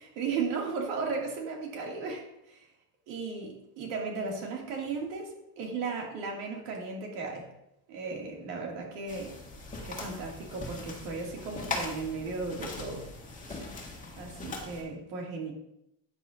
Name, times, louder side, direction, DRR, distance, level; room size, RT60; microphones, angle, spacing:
voice 1, 0.0-2.7 3.1-7.5 7.9-9.3 9.9-13.1 13.4-13.6 14.2-15.5, right 4 dB, 80° right, -1 dB, 2.7 m, -35 dB
sound 1, 9.1-14.8, left 3 dB, 20° left, 1.9 m, -40 dB
9.7 x 8.6 x 2.7 m, 0.82 s
cardioid pair, 135°, 43 cm